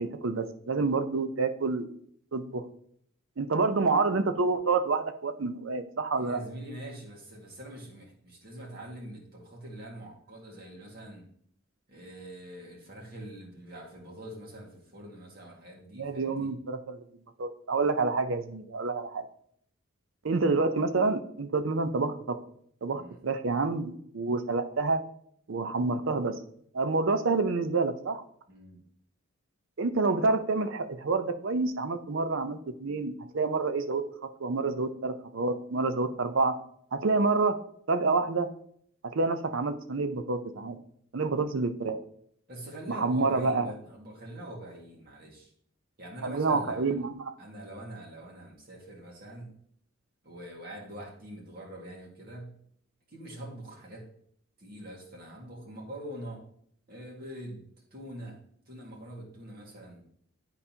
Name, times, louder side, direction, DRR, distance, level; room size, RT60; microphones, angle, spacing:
voice 1, 0.0-1.9 2.3-2.6 3.4-6.4 15.9-17.0 17.4-19.2 20.2-22.4 22.8-25.0 25.5-26.4 26.7-28.2 29.8-34.0 34.4-36.6 36.9-37.6 37.9-38.5 39.1-40.8 41.1-42.0 42.9-43.7 46.2-47.3, right 3 dB, 65° right, 9 dB, 0.6 m, -28 dB
voice 2, 6.2-11.3 11.9-16.5 22.9-23.2 28.5-28.8 42.5-45.5 46.0-46.9 47.4-49.5 50.2-52.6 53.1-54.0 54.6-56.4 56.9-57.6 57.9-58.4 58.7-60.0, right 1 dB, 45° right, -2 dB, 1.9 m, -44 dB
11.0 x 4.1 x 2.8 m, 0.65 s
head